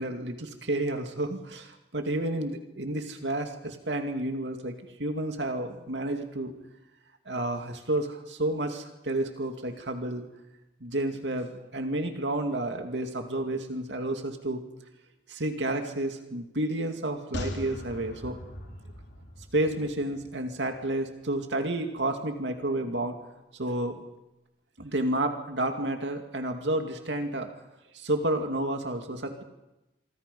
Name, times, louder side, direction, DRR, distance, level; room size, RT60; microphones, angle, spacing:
voice 1, 0.0-6.5 7.3-10.2 10.8-14.6 15.3-18.4 19.5-23.2 23.6-24.0 24.8-27.5 27.9-29.4, right 1 dB, 90° right, 5 dB, 2.4 m, -30 dB
sound 1, 17.3-20.8 21.1-21.2, left 1 dB, 70° left, 3.6 m, -40 dB
25.5 x 25.0 x 5.5 m, 0.97 s
head